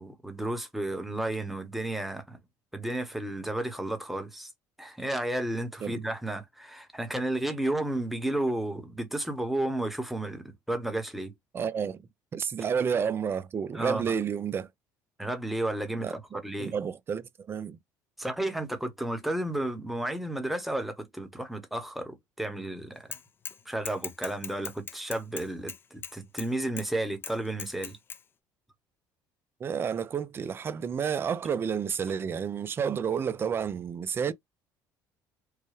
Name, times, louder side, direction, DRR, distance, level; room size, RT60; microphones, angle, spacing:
voice 1, 0.0-2.4 2.7-4.5 4.8-11.3 13.7-14.1 15.2-16.7 18.2-23.1 23.7-28.0, right 1 dB, ahead, 1.0 m, -32 dB
voice 2, 11.5-12.0 12.3-14.7 16.0-17.8 29.6-34.3, right 7 dB, 30° right, 0.5 m, -30 dB
Bicycle / Mechanisms, 23.1-23.6 23.9-26.5 26.8-26.9 27.2-28.2, left 6 dB, 30° left, 0.5 m, -39 dB
4.6 x 2.2 x 3.2 m
cardioid pair, 120°, 7 cm